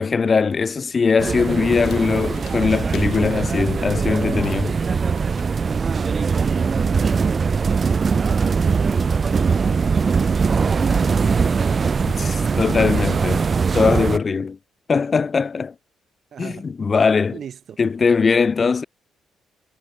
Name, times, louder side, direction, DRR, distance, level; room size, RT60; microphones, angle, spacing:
voice 1, 0.0-4.8 12.2-14.6 14.9-15.7 16.4-17.4 17.8-18.8, left 5 dB, 35° left, 0.6 m, -20 dB
sound 1, 0.9-6.5, left 10 dB, 70° left, 1.8 m, -49 dB
sound 2, 1.2-14.2, right 5 dB, 40° right, 0.4 m, -21 dB
voice 2, 5.9-12.1 16.3-16.7 17.3-17.8, right 8 dB, 60° right, 1.3 m, -40 dB
cardioid pair, 90°, 0 cm